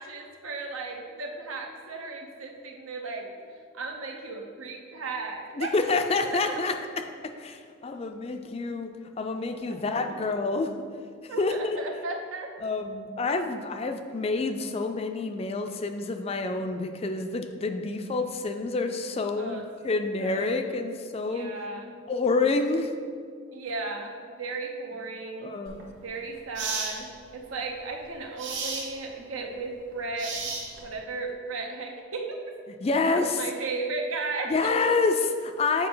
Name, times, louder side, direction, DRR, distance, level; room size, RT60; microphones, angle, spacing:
voice 1, 0.0-3.3 3.7-5.7 6.2-6.6 9.9-10.1 11.3-12.5 19.4-19.6 20.2-20.8 21.2-22.0 23.5-25.6 26.0-30.4 30.8-32.4 33.1-34.5, right 3 dB, 85° right, 2 dB, 0.9 m, -35 dB
voice 2, 5.6-6.8 7.4-10.7 11.2-11.8 12.6-21.5 22.1-22.9 25.4-25.8 32.8-33.4 34.4-35.9, left 3 dB, 30° left, 7 dB, 0.3 m, -28 dB
sound 1, 25.7-25.8 26.6-27.0 28.4-28.9 30.2-30.9, right 4 dB, 65° right, 1.2 m, -32 dB
7.5 x 4.8 x 3.9 m, 2.1 s
head